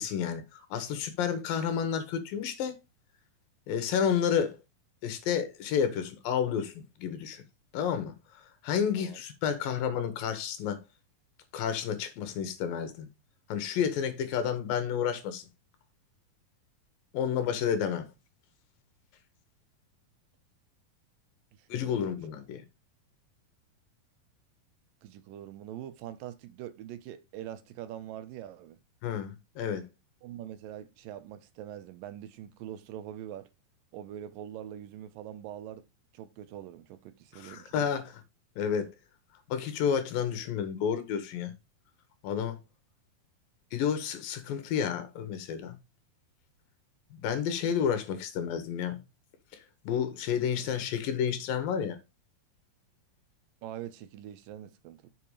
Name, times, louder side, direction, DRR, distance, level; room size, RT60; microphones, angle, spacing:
voice 1, 0.0-2.8 3.7-4.6 5.0-6.7 7.0-7.4 7.7-8.1 8.6-10.8 11.5-13.1 13.5-15.5 17.1-18.1 21.7-22.6 29.0-29.8 37.3-38.0 38.6-38.9 39.5-41.5 42.2-42.6 43.7-45.8 47.1-49.0 49.9-52.0, left 8 dB, 75° left, 2.9 m, -30 dB
voice 2, 21.7-22.2 25.0-28.8 30.2-33.5 33.9-35.8 36.1-37.9 53.6-55.1, right 11 dB, 80° right, 2.3 m, -43 dB
6.8 x 5.5 x 4.9 m
omnidirectional pair, 4.1 m